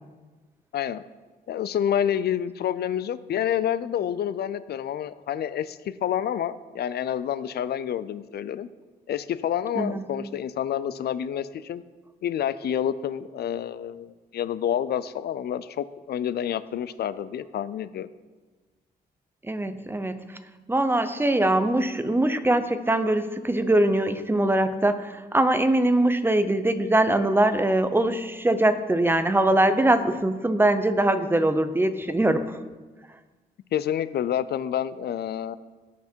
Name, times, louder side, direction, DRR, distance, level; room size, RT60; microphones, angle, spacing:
voice 1, 0.7-1.0 1.5-8.7 9.1-11.8 12.2-18.1 33.7-35.6, left 9 dB, 75° left, 15 dB, 0.5 m, -28 dB
voice 2, 19.4-20.4 20.7-32.6, right 1 dB, 15° right, 10 dB, 0.7 m, -22 dB
17.5 x 6.0 x 4.5 m, 1.3 s
cardioid pair, 100°, 17 cm